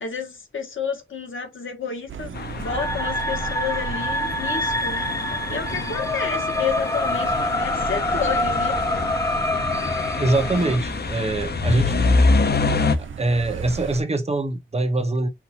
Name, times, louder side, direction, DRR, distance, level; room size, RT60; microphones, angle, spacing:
voice 1, 0.0-8.8, left 6 dB, 75° left, 1.5 m, -31 dB
sound 1, 2.1-14.0, right 6 dB, 70° right, 0.5 m, -36 dB
sound 2, 2.4-13.0, left 3 dB, 50° left, 0.7 m, -26 dB
sound 3, 2.6-10.8, left 1 dB, 15° left, 0.6 m, -26 dB
voice 2, 10.2-12.0 13.0-15.3, right 2 dB, 30° right, 1.0 m, -23 dB
5.8 x 2.7 x 2.8 m
wide cardioid pair, 100°, 21 cm